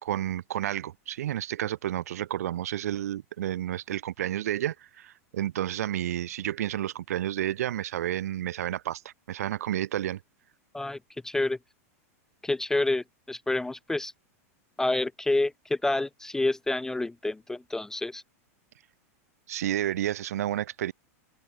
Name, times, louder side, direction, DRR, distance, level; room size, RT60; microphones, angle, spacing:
voice 1, 0.0-10.2 19.5-20.9, right 12 dB, 80° right, 1.3 m, -31 dB
voice 2, 11.2-11.6 12.4-14.1 14.8-18.2, left 2 dB, 5° left, 0.4 m, -28 dB
open air
supercardioid pair, 130°, 8 cm